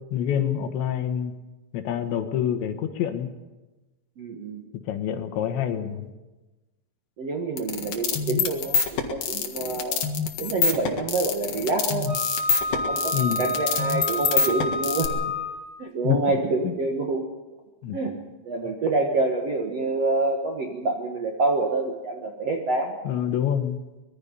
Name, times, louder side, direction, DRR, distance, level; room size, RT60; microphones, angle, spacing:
voice 1, 0.1-1.3 1.7-3.3 4.9-6.1 13.1-13.4 16.0-16.2 16.6-16.7 17.8-18.0 23.1-23.8, left 9 dB, 75° left, 7 dB, 3.6 m, -26 dB
voice 2, 4.2-4.6 7.2-10.0 10.4-12.1 12.7-15.1 15.8-17.2 17.9-18.1 18.4-23.0, right 3 dB, 55° right, 1 dB, 1.8 m, -27 dB
sound 1, 7.6-15.1, left 7 dB, 60° left, 3.1 m, -25 dB
Wind instrument woodwind instrument, 12.1-15.7, left 1 dB, 40° right, 6.0 m, -29 dB
24.5 x 20.5 x 5.5 m, 1.1 s
omnidirectional pair, 5.3 m